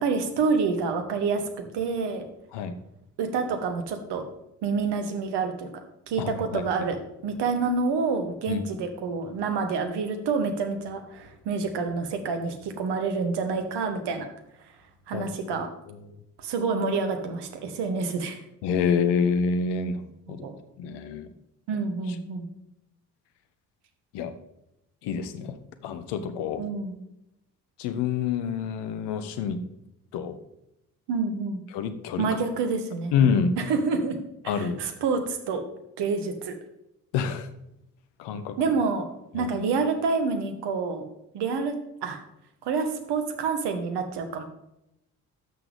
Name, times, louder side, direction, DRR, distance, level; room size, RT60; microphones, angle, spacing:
voice 1, 0.0-1.4 1.7-2.3 3.2-4.2 4.6-5.7 6.1-14.3 15.1-15.7 16.4-18.4 20.3-20.6 21.7-22.4 26.6-27.0 31.1-31.6 32.2-33.1 33.6-34.2 34.4-35.6 36.0-36.5 38.6-39.1 39.3-41.1 41.3-41.8 42.0-42.2 42.6-44.4, right 4 dB, 55° right, 7 dB, 1.5 m, -28 dB
voice 2, 6.2-6.6 8.5-8.6 15.1-15.3 15.9-16.1 18.6-20.5 20.8-21.3 24.1-24.3 25.0-26.7 27.8-29.6 30.1-30.4 31.7-32.3 33.1-33.6 34.5-34.8 37.1-37.5 38.2-38.6 39.3-39.5, left 6 dB, 60° left, 10 dB, 1.0 m, -27 dB
12.5 x 6.1 x 3.5 m, 0.84 s
figure-of-eight pair, 45°, 48 cm